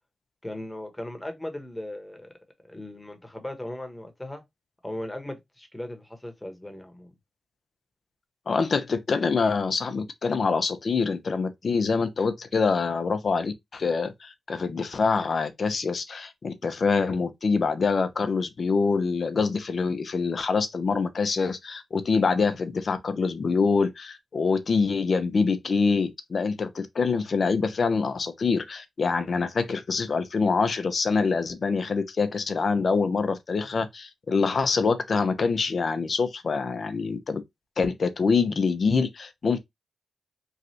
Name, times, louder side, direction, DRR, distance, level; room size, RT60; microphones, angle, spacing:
voice 1, 0.4-2.3 2.7-4.4 4.8-7.1, left 1 dB, 15° left, 1.1 m, -37 dB
voice 2, 8.5-37.4 37.8-39.6, left 4 dB, 60° left, 0.6 m, -25 dB
3.1 x 2.4 x 2.7 m
supercardioid pair, 40°, 0 cm